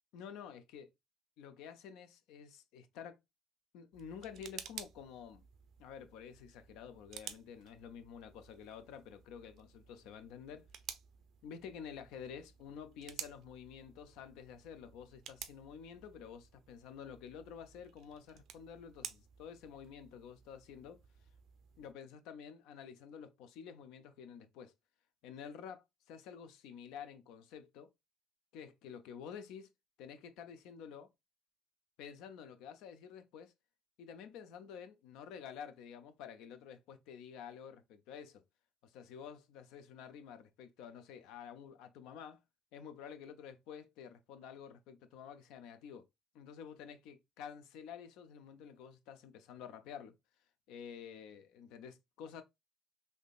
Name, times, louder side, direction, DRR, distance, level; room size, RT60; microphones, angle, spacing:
voice 1, 0.1-0.9 1.4-3.2 3.7-5.4 5.8-10.7 11.4-21.0 21.8-24.7 25.2-27.9 28.5-29.7 30.0-31.1 32.0-33.5 34.0-38.4 38.8-42.4 42.7-46.0 46.3-50.1 50.7-52.4, left 7 dB, 80° left, 0.5 m, -50 dB
sound 1, 3.9-21.9, right 9 dB, 65° right, 0.4 m, -53 dB
3.5 x 2.7 x 2.4 m
supercardioid pair, 75°, 0 cm